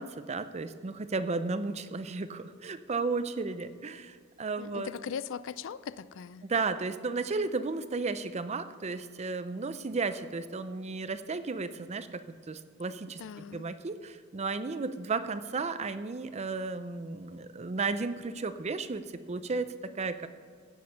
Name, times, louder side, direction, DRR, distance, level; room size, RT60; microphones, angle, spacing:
voice 1, 0.0-4.9 6.4-20.3, right 4 dB, 30° right, 0.5 m, -34 dB
voice 2, 4.6-6.4 13.2-13.7, left 7 dB, 65° left, 0.4 m, -39 dB
16.0 x 6.4 x 5.6 m
head